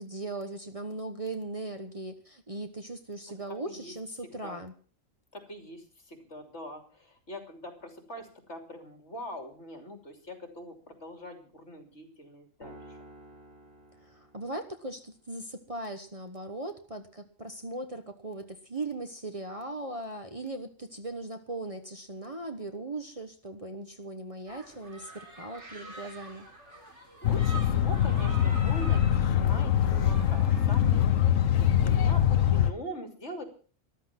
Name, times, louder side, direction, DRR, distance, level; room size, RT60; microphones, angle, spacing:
voice 1, 0.0-4.7 14.1-26.4, right 2 dB, 25° right, 4 dB, 1.2 m, -39 dB
voice 2, 5.3-13.0 26.9-31.1 31.5-33.4, equal, 60° left, 6 dB, 3.2 m, -43 dB
sound 1, 12.6-15.0, right 1 dB, 80° right, 4.7 m, -51 dB
sound 2, 24.5-32.6, right 2 dB, 60° right, 3.9 m, -47 dB
sound 3, 27.2-32.7, left 10 dB, 75° left, 1.2 m, -24 dB
13.5 x 12.5 x 5.9 m, 0.42 s
omnidirectional pair, 1.4 m